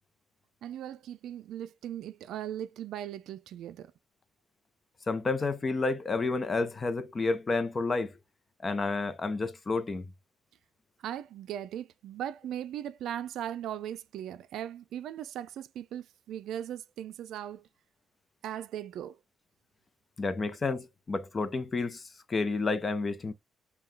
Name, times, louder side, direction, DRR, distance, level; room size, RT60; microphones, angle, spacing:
voice 1, 0.6-3.9 11.0-17.7 18.4-19.2, right 10 dB, 80° right, 0.4 m, -38 dB
voice 2, 5.1-8.1 8.6-10.1 20.2-23.3, left 3 dB, 30° left, 0.7 m, -30 dB
5.5 x 2.3 x 3.2 m
cardioid pair, 90°, 0 cm